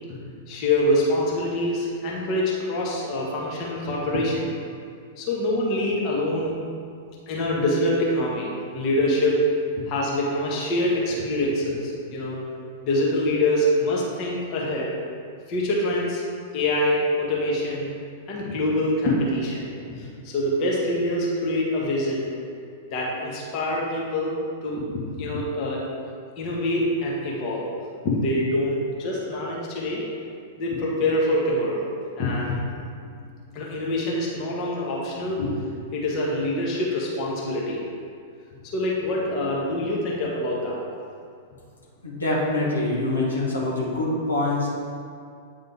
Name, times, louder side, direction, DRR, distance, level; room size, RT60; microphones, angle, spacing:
voice 1, 0.5-4.5 5.2-6.6 6.9-9.4 9.9-12.4 12.8-14.9 15.5-16.2 16.5-17.9 18.3-22.3 22.9-24.4 24.6-24.8 25.2-25.8 26.4-27.7 28.0-30.0 30.6-31.9 32.2-32.6 33.5-35.5 35.9-37.9 38.7-40.8, left 1 dB, 40° left, -4 dB, 1.2 m, -25 dB
voice 2, 42.0-44.7, left 2 dB, 75° left, -5 dB, 1.2 m, -24 dB
9.0 x 3.6 x 3.5 m, 2.3 s
figure-of-eight pair, 95°, 0 cm